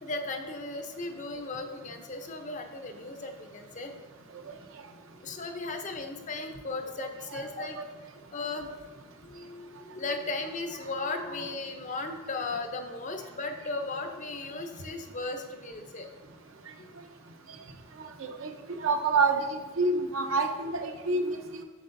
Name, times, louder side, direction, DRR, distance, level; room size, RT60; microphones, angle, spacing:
voice 1, 0.0-3.9 5.2-7.8 8.3-8.7 9.2-16.1 16.8-16.9, left 3 dB, 35° left, 6 dB, 0.6 m, -36 dB
voice 2, 7.0-7.4 7.8-7.9 18.2-18.5 18.8-21.6, right 3 dB, 70° right, 4 dB, 0.7 m, -28 dB
8.0 x 6.5 x 2.6 m, 1.3 s
head